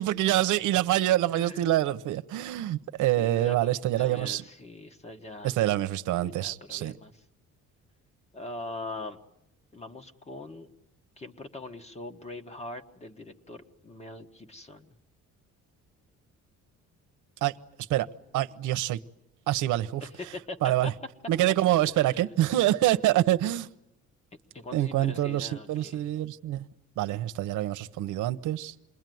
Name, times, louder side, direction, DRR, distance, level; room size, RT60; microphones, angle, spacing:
voice 1, 0.0-4.4 5.4-7.0 17.4-17.5 17.9-18.1 18.3-19.0 19.5-20.1 20.6-20.9 21.3-23.7 24.7-26.7 27.0-28.7, right 14 dB, 80° right, 0.9 m, -26 dB
voice 2, 1.3-1.6 3.1-5.8 6.2-7.1 8.3-9.2 9.7-10.7 11.2-14.9 20.0-20.9 21.9-22.2 24.5-26.0, left 2 dB, 20° left, 1.4 m, -42 dB
28.0 x 21.5 x 9.3 m
cardioid pair, 155°, 30 cm